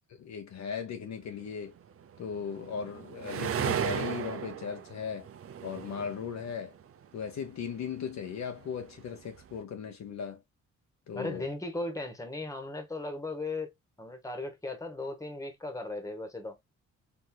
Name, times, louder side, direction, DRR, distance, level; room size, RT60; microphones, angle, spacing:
voice 1, 0.2-1.7 2.2-5.3 5.6-6.7 7.1-10.4 11.1-11.5, left 7 dB, 55° left, 0.9 m, -37 dB
sound 1, 1.8-7.5 7.8-9.5, right 8 dB, 45° right, 0.6 m, -36 dB
voice 2, 11.1-13.7 14.0-16.6, left 2 dB, 10° left, 1.5 m, -37 dB
4.5 x 3.1 x 2.3 m
supercardioid pair, 70°, 32 cm